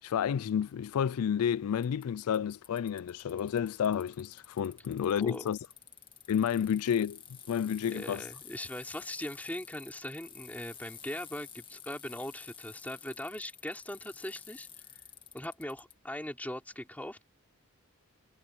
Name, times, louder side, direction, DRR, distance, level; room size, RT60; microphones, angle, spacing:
voice 1, 0.0-5.6 6.3-7.2 7.5-8.2, left 8 dB, 90° left, 0.3 m, -30 dB
Bicycle, 1.8-15.9, left 8 dB, 20° left, 2.1 m, -51 dB
voice 2, 7.9-15.0 15.3-17.2, left 1 dB, 5° left, 3.7 m, -40 dB
head